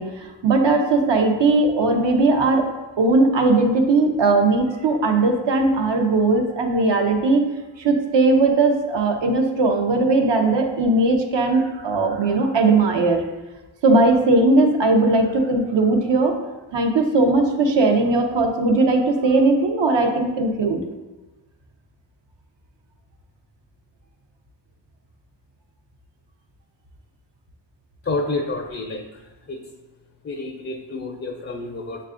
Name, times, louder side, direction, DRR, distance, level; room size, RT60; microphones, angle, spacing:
voice 1, 0.0-2.7 3.0-7.4 7.8-13.2 13.8-16.4 16.7-20.8, right 3 dB, 70° right, 3 dB, 0.7 m, -18 dB
voice 2, 28.0-29.1 29.5-29.6 30.2-32.1, left 2 dB, 35° left, 2 dB, 0.4 m, -29 dB
6.5 x 2.3 x 2.4 m, 1.1 s
cardioid pair, 45°, 45 cm